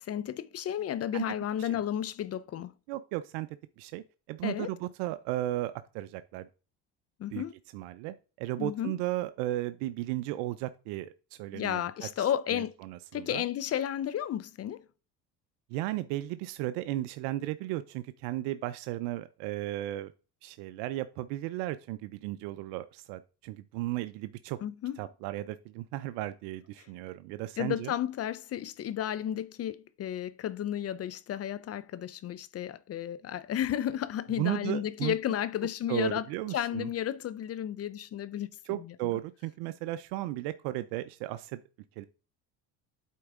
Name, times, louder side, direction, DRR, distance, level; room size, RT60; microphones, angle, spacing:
voice 1, 0.0-2.7 4.4-4.7 7.2-7.5 8.6-8.9 11.5-12.7 13.1-14.8 24.6-25.0 27.6-36.2 36.5-39.1, left 11 dB, 40° left, 0.5 m, -33 dB
voice 2, 2.9-3.5 3.8-6.5 7.3-7.4 7.7-13.4 15.7-20.1 20.4-24.6 25.0-27.9 34.4-35.2 35.9-36.9 38.6-41.6 42.0-42.1, right 15 dB, 80° right, 0.6 m, -35 dB
8.4 x 4.5 x 3.6 m
supercardioid pair, 95°, 41 cm